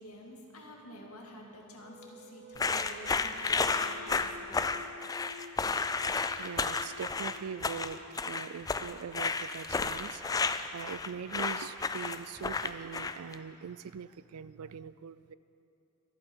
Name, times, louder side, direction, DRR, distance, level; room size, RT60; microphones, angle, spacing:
voice 1, 0.0-4.8, equal, 75° left, 0 dB, 2.0 m, -49 dB
sound 1, 1.8-9.1, left 2 dB, 40° right, 1.3 m, -51 dB
sound 2, 2.6-13.3, left 4 dB, 15° left, 0.3 m, -32 dB
voice 2, 6.4-15.3, right 7 dB, 80° right, 16 dB, 0.4 m, -42 dB
24.0 x 8.7 x 4.5 m, 2.8 s
head